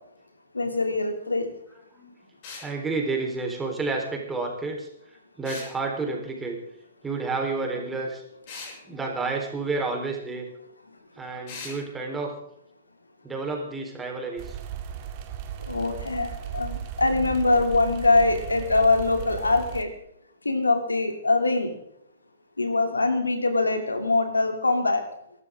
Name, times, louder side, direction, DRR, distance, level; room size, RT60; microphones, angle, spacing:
voice 1, 0.5-1.5 15.7-19.9 20.4-21.7 22.6-25.0, left 3 dB, 90° left, 6 dB, 2.8 m, -23 dB
sound 1, 2.4-2.7 5.4-5.7 8.5-8.8 11.5-11.8, left 4 dB, 45° left, 6.3 m, -39 dB
voice 2, 2.6-6.6 7.0-8.2 8.9-10.4 11.2-12.3 13.2-14.6, right 3 dB, 10° right, 1 dB, 4.1 m, -30 dB
sound 2, 14.4-19.8, right 9 dB, 40° right, 2.1 m, -36 dB
23.0 x 12.5 x 3.8 m, 0.72 s
figure-of-eight pair, 120°, 0 cm